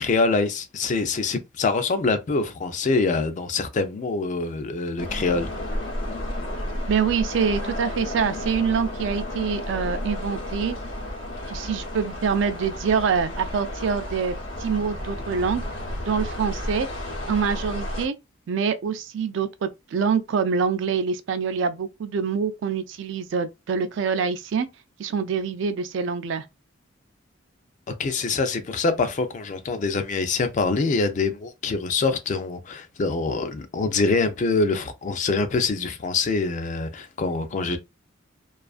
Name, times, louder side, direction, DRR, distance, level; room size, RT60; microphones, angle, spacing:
voice 1, 0.0-5.5 27.9-37.8, left 3 dB, 40° left, 0.4 m, -25 dB
sound 1, 5.0-18.1, left 1 dB, 85° left, 0.8 m, -32 dB
voice 2, 6.9-10.8 11.5-15.6 16.1-16.9 17.3-18.1 18.5-24.7 25.0-26.4, right 6 dB, 65° right, 0.3 m, -25 dB
2.4 x 2.3 x 2.3 m
head